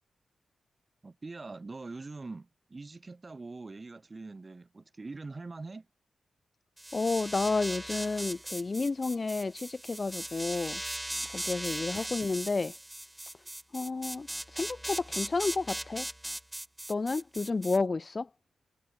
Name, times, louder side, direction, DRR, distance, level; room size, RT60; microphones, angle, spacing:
voice 1, 1.0-5.9, right 3 dB, 20° right, 4.4 m, -43 dB
sound 1, 6.8-17.8, right 1 dB, 5° right, 1.0 m, -38 dB
voice 2, 6.9-10.8 11.3-12.8 13.7-16.1 16.9-18.3, left 3 dB, 25° left, 0.4 m, -31 dB
wide cardioid pair, 180°, 0 cm